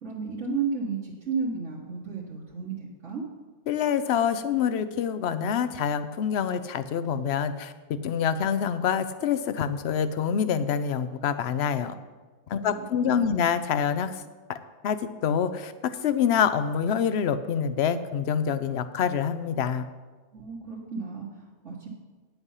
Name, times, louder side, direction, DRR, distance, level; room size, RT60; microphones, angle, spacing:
voice 1, 0.0-3.3 12.6-13.4 20.3-21.9, right 5 dB, 75° right, -5 dB, 1.7 m, -33 dB
voice 2, 3.7-11.9 12.5-14.2 14.5-14.6 14.8-19.9, left 7 dB, 65° left, 12 dB, 0.8 m, -26 dB
9.8 x 8.0 x 5.6 m, 1.3 s
omnidirectional pair, 1.3 m